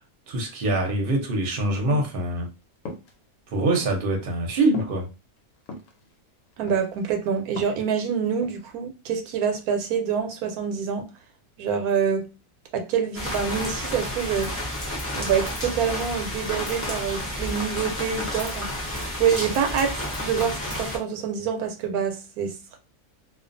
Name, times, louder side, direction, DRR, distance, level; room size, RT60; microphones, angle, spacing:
voice 1, 0.3-2.5 3.5-5.1, right 2 dB, 50° right, 0.8 m, -24 dB
sound 1, 1.9-2.2 2.9-3.1 3.8-3.9 4.7-4.9 5.7-5.9 6.7-7.1 7.4-7.9 8.4-8.7, left 2 dB, 85° left, 1.1 m, -36 dB
voice 2, 6.6-11.1 11.6-12.3 12.7-14.5 15.2-18.7 19.2-22.8, right 7 dB, 85° right, 1.1 m, -26 dB
sound 2, 13.1-21.0, left 1 dB, 20° left, 0.3 m, -31 dB
2.4 x 2.3 x 2.5 m
omnidirectional pair, 1.5 m